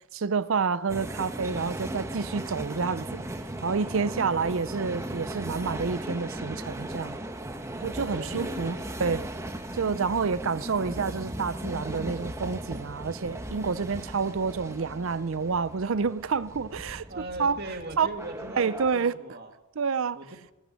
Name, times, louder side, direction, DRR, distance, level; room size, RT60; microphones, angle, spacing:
voice 1, 0.1-3.2 3.6-7.2 7.8-9.2 9.7-17.1 17.4-17.6 18.0-18.1 18.6-19.1 19.8-20.2, right 5 dB, 65° right, 0.5 m, -28 dB
sound 1, 0.9-19.0, right 1 dB, 15° right, 1.0 m, -37 dB
voice 2, 4.1-4.7 8.0-8.9 17.1-19.5 20.1-20.3, right 2 dB, 45° right, 2.2 m, -40 dB
18.5 x 11.5 x 6.4 m
head